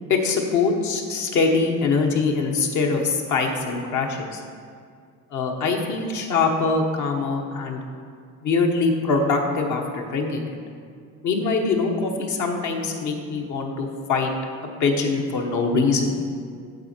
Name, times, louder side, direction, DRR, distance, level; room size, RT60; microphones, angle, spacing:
voice 1, 0.1-4.4 5.3-7.8 8.4-10.6 11.2-14.3 14.8-16.1, left 4 dB, 65° left, 2 dB, 1.3 m, -23 dB
8.0 x 7.4 x 4.5 m, 2.2 s
cardioid pair, 105°, 31 cm